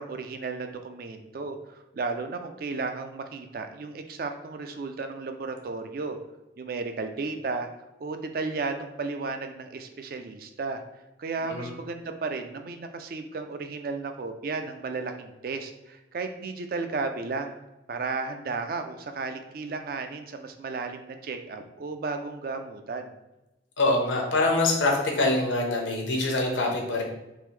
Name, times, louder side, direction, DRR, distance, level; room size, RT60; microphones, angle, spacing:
voice 1, 0.0-6.2 6.6-7.7 8.0-10.8 11.2-17.6 17.9-23.1, right 4 dB, 50° right, 6 dB, 0.3 m, -34 dB
voice 2, 23.8-27.0, left 2 dB, 85° left, 1 dB, 0.8 m, -24 dB
3.7 x 2.9 x 3.1 m, 0.96 s
head